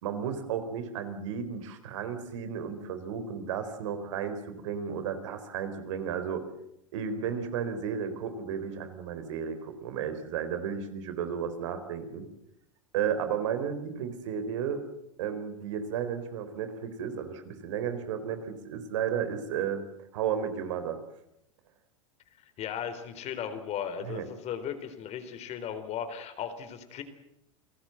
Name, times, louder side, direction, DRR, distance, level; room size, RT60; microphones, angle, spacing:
voice 1, 0.0-6.5 6.9-12.3 12.9-14.8 15.2-19.8 20.1-21.0 24.0-24.3, right 7 dB, 65° right, 9 dB, 4.0 m, -33 dB
voice 2, 22.4-27.0, left 8 dB, 40° left, 10 dB, 3.9 m, -36 dB
29.0 x 18.5 x 7.7 m, 0.81 s
hypercardioid pair, 95°, 17 cm